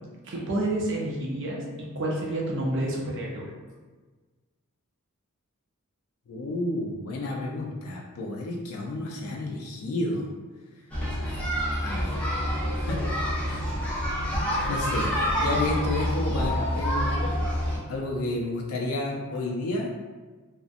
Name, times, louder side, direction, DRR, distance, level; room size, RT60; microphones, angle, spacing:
voice 1, 0.2-3.5, right 1 dB, 55° right, -2 dB, 0.5 m, -29 dB
voice 2, 6.3-10.3 11.8-12.2 12.7-13.0 13.4-13.7 14.7-15.1 15.4-17.3 17.9-19.9, left 2 dB, 70° left, 0 dB, 0.4 m, -31 dB
sound 1, 10.9-17.8, equal, 5° left, 0.4 m, -27 dB
2.6 x 2.0 x 2.4 m, 1.3 s
head